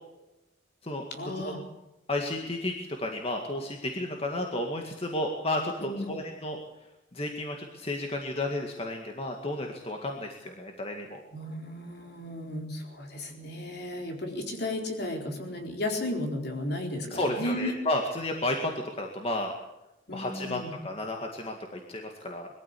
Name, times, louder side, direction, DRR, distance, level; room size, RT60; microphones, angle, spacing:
voice 1, 1.1-1.6 5.8-6.2 11.3-17.8 20.1-20.8, left 1 dB, 60° left, 2 dB, 4.4 m, -34 dB
voice 2, 2.1-6.6 7.1-11.2 17.1-18.7 19.0-19.5 20.1-22.5, left 1 dB, 30° left, 2 dB, 2.0 m, -32 dB
21.5 x 14.0 x 8.5 m, 0.96 s
head